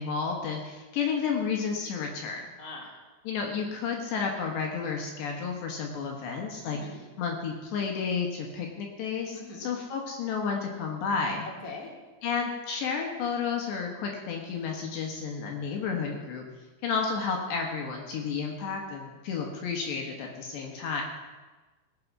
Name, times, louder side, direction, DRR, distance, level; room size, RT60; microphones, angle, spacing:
voice 1, 0.0-2.5 3.2-6.8 7.2-11.5 12.2-16.5 16.8-21.0, left 5 dB, 65° left, 1 dB, 3.3 m, -31 dB
voice 2, 2.6-3.0 6.6-7.0 9.3-9.7 11.4-11.9, left 3 dB, 25° left, -2 dB, 1.9 m, -42 dB
19.0 x 8.7 x 6.0 m, 1.2 s
omnidirectional pair, 5.9 m